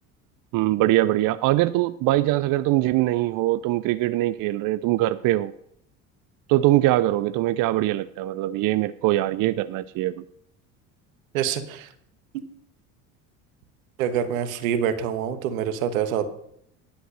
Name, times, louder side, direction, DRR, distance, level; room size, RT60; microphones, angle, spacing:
voice 1, 0.5-5.5 6.5-10.2, right 16 dB, 55° right, 13 dB, 0.6 m, -22 dB
voice 2, 11.3-11.9 14.0-16.3, right 9 dB, 80° right, 10 dB, 1.3 m, -26 dB
10.5 x 7.9 x 6.4 m, 0.72 s
hypercardioid pair, 75°, 41 cm